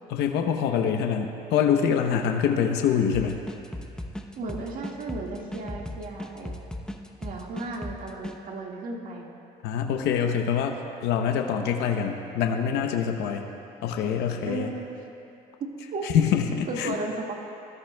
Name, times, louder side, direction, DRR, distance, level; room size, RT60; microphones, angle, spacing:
voice 1, 0.1-3.4 9.6-13.5 13.8-14.7 16.0-16.9, left 7 dB, 85° left, 4 dB, 0.8 m, -25 dB
sound 1, 3.1-8.4, left 1 dB, 5° left, 0.8 m, -37 dB
voice 2, 4.4-6.6 7.2-9.3 13.1-13.4 14.4-14.9 15.6-16.1 16.7-17.3, right 3 dB, 55° right, 0 dB, 1.8 m, -35 dB
19.5 x 13.5 x 2.2 m, 2.6 s
cardioid pair, 110°, 17 cm